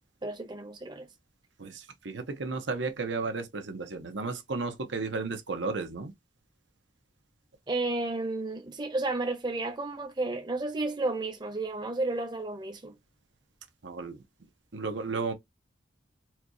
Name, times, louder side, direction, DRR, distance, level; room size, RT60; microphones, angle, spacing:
voice 1, 0.2-1.1 7.7-12.9, right 2 dB, 25° right, 0.7 m, -32 dB
voice 2, 1.6-6.1 13.8-14.2 14.7-15.3, right 4 dB, 90° right, 0.8 m, -33 dB
4.5 x 2.3 x 2.6 m
head